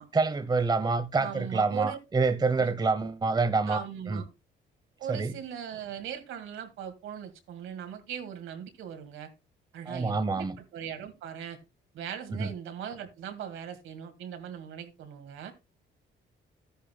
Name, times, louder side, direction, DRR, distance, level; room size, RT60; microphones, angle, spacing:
voice 1, 0.0-4.2 5.1-5.3 9.9-10.6 12.4-12.5, right 4 dB, 20° right, 0.8 m, -27 dB
voice 2, 1.2-2.0 2.3-2.7 3.7-4.3 5.0-9.3 9.7-11.6 11.9-15.5, right 8 dB, 85° right, 2.1 m, -40 dB
13.0 x 10.0 x 2.2 m
cardioid pair, 90°, 20 cm